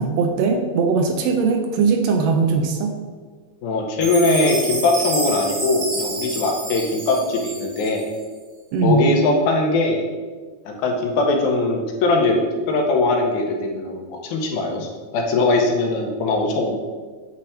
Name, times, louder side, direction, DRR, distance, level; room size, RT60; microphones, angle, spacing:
voice 1, 0.0-2.9 8.7-9.1, right 4 dB, 80° right, 4 dB, 1.7 m, -20 dB
voice 2, 3.6-8.1 8.8-10.0 10.7-16.7, left 2 dB, 80° left, 2 dB, 2.2 m, -21 dB
Chime, 4.0-8.2, right 2 dB, 50° right, 2.2 m, -29 dB
8.5 x 3.4 x 4.2 m, 1.5 s
omnidirectional pair, 3.5 m